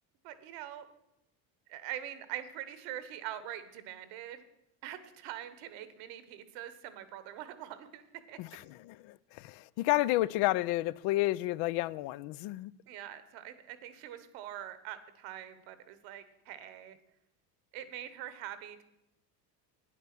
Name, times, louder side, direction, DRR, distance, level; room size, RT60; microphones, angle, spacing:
voice 1, 0.2-0.9 1.7-4.4 4.8-8.4 12.9-17.0 17.7-18.8, right 11 dB, 70° right, 12 dB, 1.2 m, -43 dB
voice 2, 8.4-12.7, left 17 dB, 60° left, 20 dB, 0.5 m, -31 dB
9.2 x 9.0 x 6.0 m, 0.87 s
supercardioid pair, 90°, 46 cm